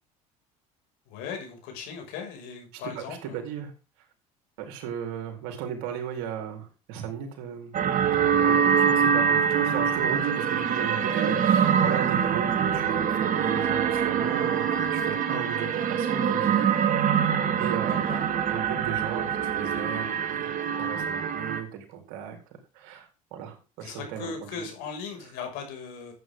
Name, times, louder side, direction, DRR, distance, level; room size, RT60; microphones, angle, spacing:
voice 1, 1.1-3.4 17.9-18.3 23.8-26.1, left 6 dB, 75° left, 3 dB, 6.4 m, -38 dB
voice 2, 2.7-3.7 4.6-7.7 8.4-16.7 17.6-18.2 18.5-22.4 22.7-24.6, right 8 dB, 75° right, 4 dB, 4.1 m, -36 dB
sound 1, 7.7-21.6, right 7 dB, 50° right, 2.1 m, -24 dB
13.5 x 9.1 x 3.8 m, 0.32 s
supercardioid pair, 85°, 18 cm